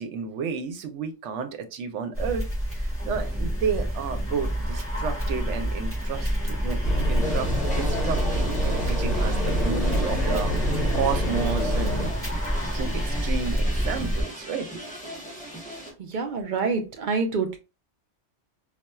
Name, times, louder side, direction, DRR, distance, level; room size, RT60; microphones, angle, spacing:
voice 1, 0.0-7.5 7.7-10.6 10.9-11.9 12.7-14.9, right 6 dB, 80° right, 7 dB, 0.9 m, -32 dB
sound 1, 2.2-14.2, equal, 10° right, 1.4 m, -28 dB
sound 2, 6.8-12.1, equal, 40° left, 0.7 m, -27 dB
sound 3, 7.2-15.9, right 1 dB, 5° left, 1.0 m, -39 dB
voice 2, 16.1-17.6, right 4 dB, 55° right, 6 dB, 0.5 m, -26 dB
4.1 x 2.3 x 2.2 m, 0.29 s
omnidirectional pair, 1.2 m